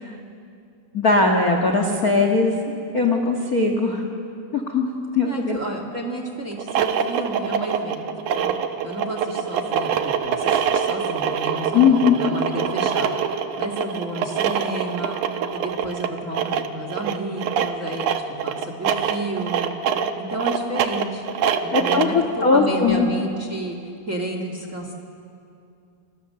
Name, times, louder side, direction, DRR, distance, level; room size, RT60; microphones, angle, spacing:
voice 1, 0.9-2.5 2.9-4.0 4.5-4.9 5.1-5.6 11.7-12.2 21.7-23.1, left 4 dB, 60° left, 3 dB, 0.9 m, -19 dB
voice 2, 5.2-8.1 8.3-8.5 8.8-13.2 13.6-15.2 15.5-19.7 20.2-21.2 21.6-22.1 22.5-23.8 24.1-24.9, right 1 dB, 30° right, 4 dB, 1.5 m, -31 dB
sound 1, 6.5-22.2, right 7 dB, 70° right, 2.1 m, -24 dB
29.0 x 23.5 x 6.8 m, 2.5 s
omnidirectional pair, 4.5 m